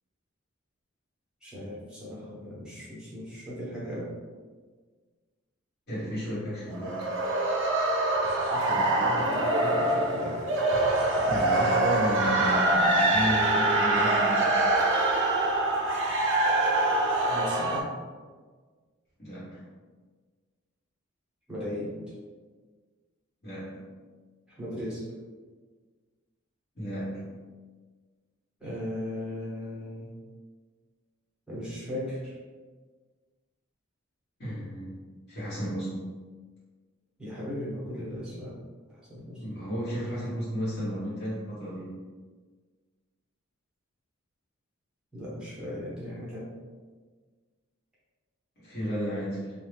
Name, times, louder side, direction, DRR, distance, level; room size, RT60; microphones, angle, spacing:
voice 1, 1.4-4.1 8.5-10.5 17.2-17.9 21.5-22.1 24.6-25.0 28.6-30.1 31.5-32.4 37.2-38.5 38.9-39.4 45.1-46.5, equal, 5° right, -8 dB, 0.9 m, -37 dB
voice 2, 5.9-7.0 11.3-14.7 19.2-19.6 23.4-23.8 26.7-27.2 34.4-35.0 35.3-36.0 39.2-41.9 48.6-49.5, equal, 50° left, -10 dB, 1.3 m, -33 dB
sound 1, 6.7-17.8, right 2 dB, 60° right, 0.5 m, -24 dB
2.6 x 2.3 x 3.3 m, 1.5 s
head